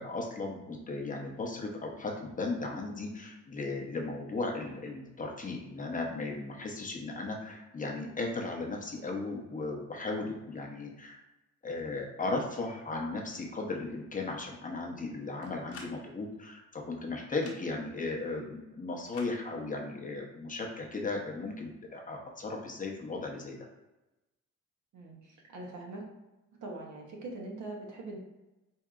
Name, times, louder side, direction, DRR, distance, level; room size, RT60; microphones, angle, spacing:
voice 1, 0.0-11.2 11.6-23.6, left 3 dB, 25° left, 0 dB, 0.7 m, -36 dB
sound 1, 15.4-15.9 17.3-17.6 19.1-19.3, left 4 dB, 55° left, 1.0 m, -48 dB
voice 2, 24.9-26.0 26.6-28.2, right 2 dB, 70° right, 0 dB, 1.0 m, -42 dB
4.6 x 2.6 x 2.4 m, 1.0 s
cardioid pair, 90°, 30 cm